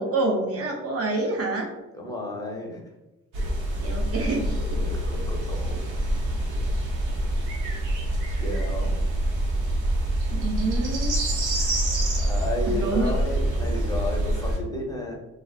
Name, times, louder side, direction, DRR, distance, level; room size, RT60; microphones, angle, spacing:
voice 1, 0.0-1.7 3.8-4.6 10.3-11.2 12.6-13.1, right 2 dB, 50° right, 1 dB, 0.6 m, -27 dB
voice 2, 1.9-2.8 4.1-4.2 4.7-5.8 8.4-9.1 12.2-15.1, left 2 dB, 10° left, 0 dB, 0.6 m, -33 dB
sound 1, 3.3-14.6, right 1 dB, 85° right, 0.7 m, -26 dB
2.4 x 2.4 x 2.3 m, 1.0 s
cardioid pair, 90°, 30 cm